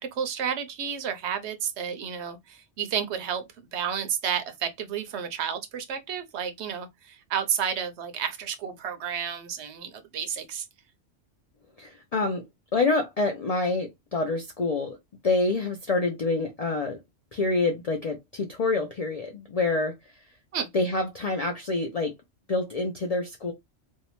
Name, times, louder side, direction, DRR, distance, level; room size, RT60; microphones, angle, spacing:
voice 1, 0.0-10.6 20.5-20.7, right 8 dB, 75° right, 0.9 m, -31 dB
voice 2, 11.8-12.4 12.7-15.0 15.2-17.0 17.3-19.9 20.7-22.1 22.5-23.5, left 3 dB, 65° left, 0.3 m, -27 dB
2.7 x 2.1 x 2.9 m
omnidirectional pair, 1.2 m